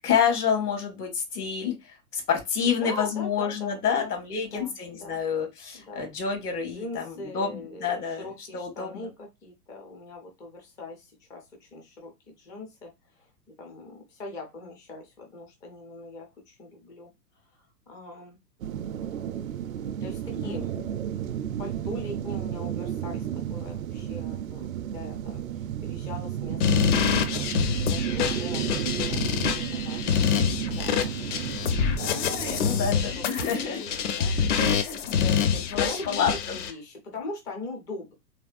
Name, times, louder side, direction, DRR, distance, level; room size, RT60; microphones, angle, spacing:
voice 1, 0.0-9.1 20.3-20.9 32.0-33.8 34.5-36.3, left 7 dB, 65° left, 4 dB, 1.7 m, -29 dB
voice 2, 2.8-4.1 4.4-5.2 5.7-6.1 6.6-9.1 9.4-13.3 13.6-17.1 17.9-18.4 20.0-20.7 21.6-29.3 29.5-30.1 30.4-31.4 31.7-31.8 32.9-34.4 35.8-36.3 36.5-38.1, left 2 dB, 10° left, 1 dB, 0.4 m, -41 dB
sound 1, 18.6-32.9, right 10 dB, 60° right, 0.5 m, -32 dB
sound 2, 26.6-36.7, left 7 dB, 50° left, 0.8 m, -26 dB
3.4 x 3.4 x 2.4 m, 0.22 s
figure-of-eight pair, 105°, 48 cm